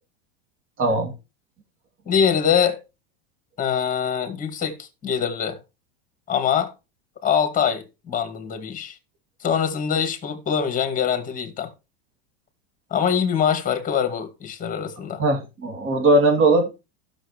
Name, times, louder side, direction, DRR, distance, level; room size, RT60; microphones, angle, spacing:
voice 1, 0.8-1.1 15.2-16.8, right 2 dB, 35° right, 2.7 m, -19 dB
voice 2, 2.1-2.8 3.6-5.6 6.3-6.7 7.2-9.0 9.4-11.7 12.9-15.2, left 7 dB, 25° left, 2.3 m, -23 dB
16.0 x 6.5 x 3.2 m
supercardioid pair, 120°, 33 cm